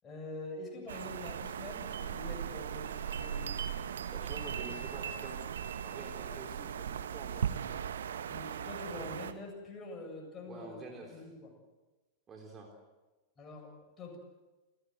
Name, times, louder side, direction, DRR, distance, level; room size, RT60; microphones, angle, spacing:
voice 1, 0.0-3.6 8.3-11.5 13.4-14.2, left 2 dB, 25° left, 2 dB, 7.8 m, -45 dB
sound 1, 0.9-9.3, right 8 dB, 65° right, 1.4 m, -38 dB
voice 2, 4.1-5.4 5.8-7.6 8.9-9.1 10.5-11.2 12.3-12.7, right 2 dB, 25° right, 2 dB, 3.6 m, -48 dB
29.0 x 17.0 x 8.0 m, 1.2 s
figure-of-eight pair, 90°, 0 cm